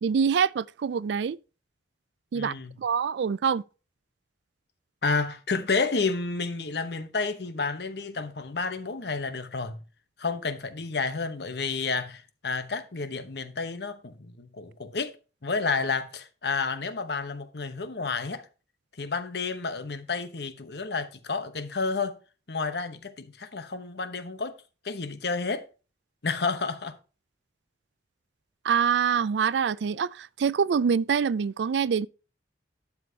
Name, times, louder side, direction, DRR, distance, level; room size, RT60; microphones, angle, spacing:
voice 1, 0.0-1.4 2.3-3.6 28.6-32.1, right 6 dB, 75° right, 0.4 m, -25 dB
voice 2, 2.3-2.7 5.0-9.8 10.2-15.1 15.4-18.5 19.0-22.2 22.5-24.5 24.8-25.6 26.2-27.0, left 4 dB, 65° left, 1.0 m, -30 dB
11.5 x 7.1 x 2.8 m
head